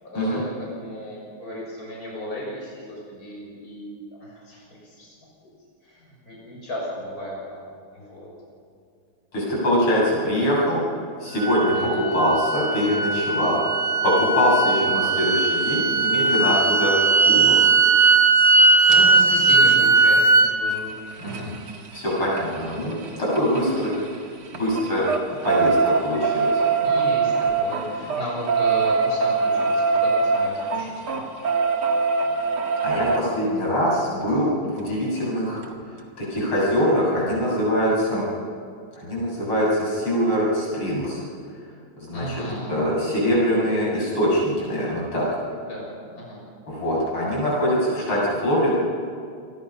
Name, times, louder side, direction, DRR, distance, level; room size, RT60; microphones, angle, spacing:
voice 1, 0.0-5.1 5.8-8.3 9.8-10.1 11.7-12.0 18.5-21.6 22.6-23.0 26.8-31.2 42.1-42.8 45.5-46.4, equal, 40° left, -4 dB, 7.0 m, -35 dB
voice 2, 9.3-10.8 11.2-13.6 14.0-17.0 17.3-17.6 21.2-21.3 21.9-23.9 24.5-25.0 25.3-26.6 32.8-35.6 36.2-38.3 39.0-41.2 42.0-42.2 42.7-45.3 46.7-48.7, equal, 80° left, -5 dB, 8.4 m, -23 dB
sound 1, 11.4-20.5, right 4 dB, 40° right, 1.5 m, -18 dB
sound 2, 18.9-19.0 20.7-24.2 24.5-33.2 34.9-35.0 35.2-35.3 35.6-35.7, right 4 dB, 80° right, 2.8 m, -23 dB
28.0 x 22.5 x 5.7 m, 2.4 s
omnidirectional pair, 2.3 m